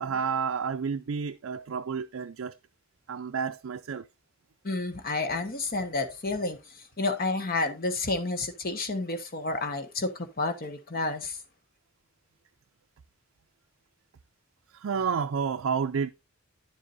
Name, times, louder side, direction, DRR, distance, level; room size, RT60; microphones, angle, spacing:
voice 1, 0.0-2.5 3.1-4.1 14.7-16.1, right 6 dB, 65° right, 0.4 m, -30 dB
voice 2, 4.6-11.4, left 3 dB, 45° left, 1.3 m, -30 dB
10.0 x 7.4 x 2.6 m
head